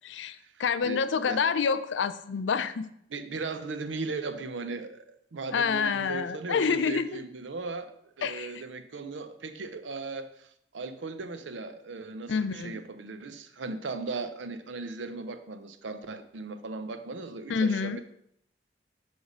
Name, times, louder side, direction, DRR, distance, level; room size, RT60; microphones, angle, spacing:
voice 1, 0.0-2.9 5.5-7.1 8.2-8.5 12.3-12.8 17.5-18.0, left 6 dB, 85° left, 13 dB, 0.4 m, -28 dB
voice 2, 0.8-1.4 3.1-18.0, right 3 dB, 85° right, 9 dB, 0.6 m, -37 dB
8.1 x 3.4 x 5.1 m, 0.73 s
head